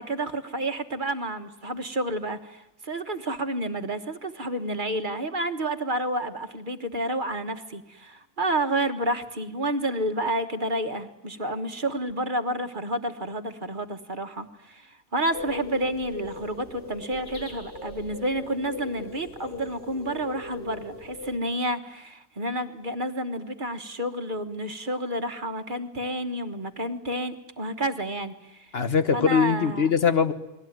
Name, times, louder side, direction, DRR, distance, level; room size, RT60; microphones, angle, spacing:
voice 1, 0.0-28.7 29.1-29.9, right 1 dB, 45° right, 8 dB, 1.5 m, -30 dB
sound 1, 15.3-21.4, left 3 dB, 80° left, 3.9 m, -39 dB
voice 2, 28.7-30.3, left 6 dB, 55° left, 10 dB, 1.4 m, -22 dB
29.0 x 21.0 x 9.3 m, 0.89 s
omnidirectional pair, 1.2 m